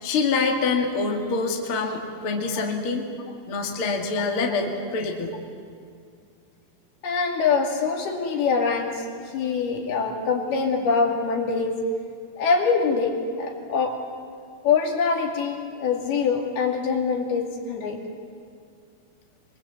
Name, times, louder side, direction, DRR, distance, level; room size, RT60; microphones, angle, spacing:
voice 1, 0.0-3.1 3.5-5.3, left 4 dB, 40° left, 1 dB, 2.1 m, -25 dB
voice 2, 7.0-9.0 9.3-11.8 12.4-14.0 14.6-18.0, left 5 dB, 65° left, 1 dB, 4.1 m, -24 dB
23.0 x 22.5 x 8.4 m, 2.3 s
omnidirectional pair, 5.0 m